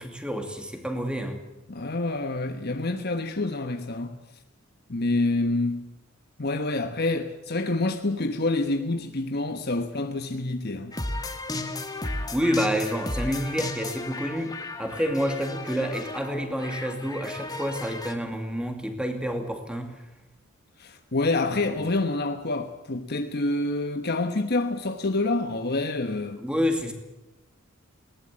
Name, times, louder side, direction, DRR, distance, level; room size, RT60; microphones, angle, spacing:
voice 1, 0.0-1.4 12.3-20.0 21.7-21.9 26.4-26.9, equal, 5° right, 2.6 m, -29 dB
voice 2, 1.7-4.2 4.9-5.9 6.4-10.9 20.8-26.4, left 2 dB, 50° left, 1.2 m, -27 dB
sound 1, 10.9-18.1, left 2 dB, 20° left, 1.7 m, -34 dB
20.0 x 18.5 x 8.7 m
head